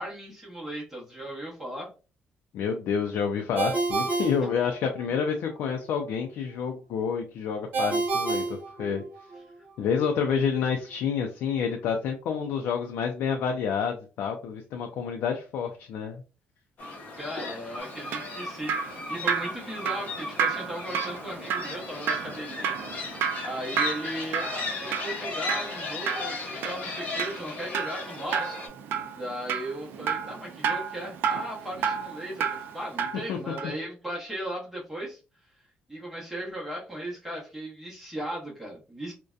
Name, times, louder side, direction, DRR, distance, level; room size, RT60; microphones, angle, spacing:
voice 1, 0.0-1.9 17.1-22.8 23.4-28.6 29.1-35.2 35.9-39.1, right 1 dB, 5° right, -4 dB, 0.8 m, -37 dB
voice 2, 2.5-9.0 9.8-16.2 33.3-33.4, left 6 dB, 80° left, 3 dB, 0.4 m, -28 dB
Ringtone, 3.6-5.2 7.7-9.4, right 3 dB, 55° right, 0.8 m, -29 dB
sound 1, 16.8-28.7, left 3 dB, 50° left, 0.7 m, -36 dB
Drip, 17.8-33.3 33.6-33.7, right 7 dB, 75° right, 0.3 m, -31 dB
2.6 x 2.1 x 2.3 m, 0.33 s
cardioid pair, 150°, 4 cm